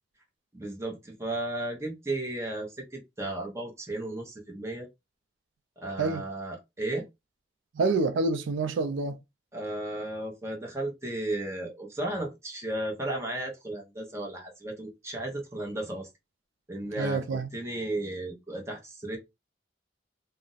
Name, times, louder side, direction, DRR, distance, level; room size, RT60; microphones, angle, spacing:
voice 1, 0.5-4.9 5.8-7.1 9.5-16.1 16.7-17.2 17.5-19.2, right 1 dB, 15° right, 0.7 m, -34 dB
voice 2, 7.7-9.2 17.0-17.5, right 3 dB, 85° right, 0.4 m, -27 dB
2.4 x 2.0 x 3.8 m
head